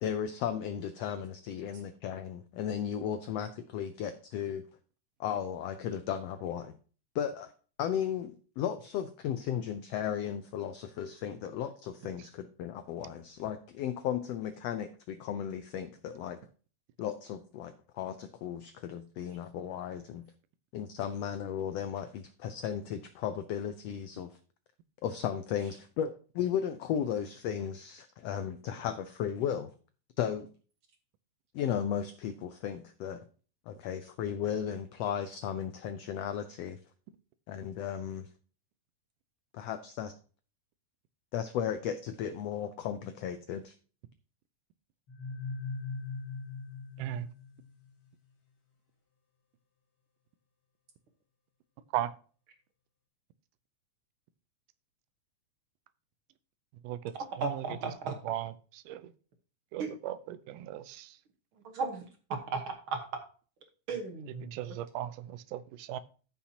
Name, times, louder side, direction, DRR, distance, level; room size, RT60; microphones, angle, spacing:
voice 1, 0.0-4.6 5.2-6.7 7.1-7.5 7.8-16.4 17.0-20.2 20.7-24.4 25.0-29.7 30.2-30.5 31.5-33.2 33.7-36.8 37.5-38.3 39.5-40.1 41.3-43.7, left 9 dB, 90° left, 10 dB, 1.4 m, -35 dB
sound 1, 45.1-47.9, left 4 dB, 50° left, 2.9 m, -40 dB
voice 2, 57.4-58.2 59.8-59.9 61.6-62.0 62.3-63.0 63.9-64.5, right 4 dB, 55° right, 4 dB, 1.7 m, -35 dB
voice 3, 59.7-61.1 64.5-66.0, right 12 dB, 85° right, 14 dB, 2.2 m, -36 dB
14.5 x 5.7 x 2.8 m, 0.39 s
omnidirectional pair, 3.6 m